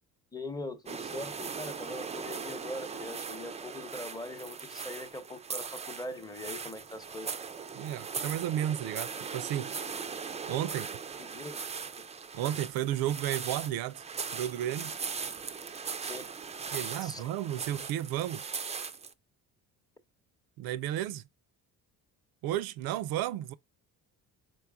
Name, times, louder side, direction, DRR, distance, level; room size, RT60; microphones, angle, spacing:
voice 1, 0.3-7.3 11.2-11.6 16.0-16.3 17.0-17.2, left 2 dB, 10° left, 0.7 m, -41 dB
sound 1, 0.9-19.1, right 5 dB, 20° right, 0.4 m, -39 dB
voice 2, 7.7-9.7 10.5-10.9 12.3-14.0 14.3-14.9 16.7-18.5 20.6-21.2 22.4-23.5, right 12 dB, 75° right, 0.5 m, -33 dB
4.6 x 4.3 x 2.2 m
supercardioid pair, 85°, 37 cm